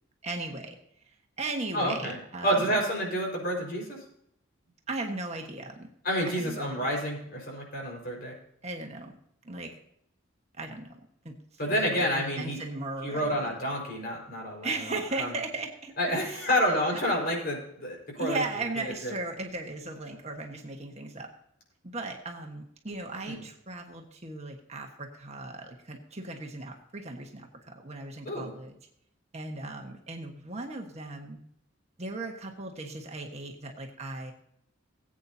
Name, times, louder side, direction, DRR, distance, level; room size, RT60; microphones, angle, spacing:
voice 1, 0.2-0.8 1.4-2.8 4.9-5.9 6.3-6.8 8.6-9.2 9.4-9.7 10.5-11.3 11.6-13.5 14.6-16.5 16.9-17.2 18.2-21.3 21.8-28.7 29.3-31.4 32.0-34.3, right 2 dB, 35° right, 2 dB, 1.3 m, -37 dB
voice 2, 1.7-2.2 2.4-4.0 6.0-8.3 11.6-12.6 13.0-15.4 16.0-18.4 18.8-19.1 23.3-23.4 28.2-28.5, equal, 50° left, -1 dB, 4.7 m, -29 dB
18.5 x 8.7 x 2.8 m, 0.72 s
head